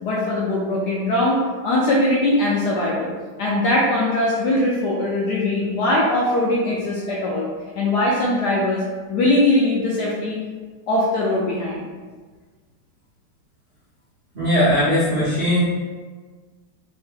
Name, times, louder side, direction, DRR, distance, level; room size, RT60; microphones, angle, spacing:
voice 1, 0.0-1.4 1.6-3.1 3.4-7.5 7.7-8.8 9.1-10.4 10.9-11.8, left 1 dB, 75° left, -5 dB, 1.0 m, -21 dB
voice 2, 14.3-15.6, left 1 dB, 60° right, -11 dB, 0.5 m, -19 dB
3.4 x 2.2 x 3.3 m, 1.4 s
omnidirectional pair, 2.2 m